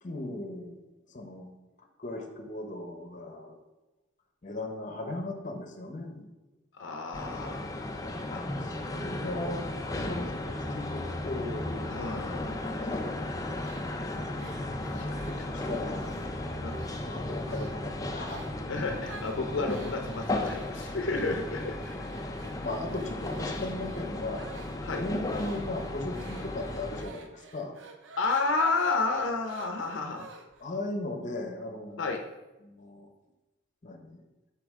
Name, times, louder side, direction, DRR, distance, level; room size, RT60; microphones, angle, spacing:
voice 1, 0.0-0.8 1.1-1.5 2.0-3.6 4.4-6.3 8.6-9.6 9.9-12.2 12.5-13.1 14.8-18.6 22.6-24.4 24.9-27.8 30.6-32.0 32.6-33.1 33.8-34.2, left 2 dB, 40° left, 4 dB, 0.9 m, -37 dB
voice 2, 6.7-7.6 8.3-8.4 11.9-12.6 14.8-15.7 16.6-16.8 18.7-21.9 24.8-25.0 28.2-30.3 32.0-32.2, left 3 dB, 80° left, 3 dB, 0.6 m, -31 dB
sound 1, 7.1-27.0, left 1 dB, 20° left, 0.4 m, -35 dB
sound 2, 13.6-16.3 16.7-17.1 17.5-17.8 18.2-18.6 19.0-30.7, right 3 dB, 85° right, 0.6 m, -49 dB
6.8 x 4.7 x 3.6 m, 1.0 s
head